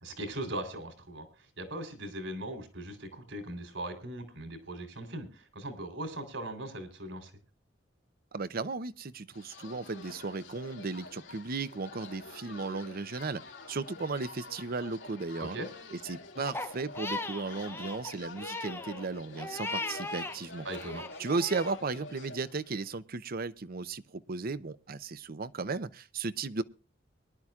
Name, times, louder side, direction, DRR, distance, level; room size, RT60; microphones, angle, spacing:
voice 1, 0.0-7.3 15.4-15.7 20.6-21.0, right 1 dB, 75° right, 3.6 m, -39 dB
voice 2, 8.3-13.4 13.7-15.6 16.0-20.7 21.2-26.6, right 4 dB, 50° right, 0.7 m, -35 dB
sound 1, 9.3-23.0, left 3 dB, 75° left, 3.1 m, -48 dB
Crying sobbing, 16.5-20.4 20.7-21.8, left 3 dB, 15° left, 0.7 m, -38 dB
23.5 x 11.5 x 2.4 m
head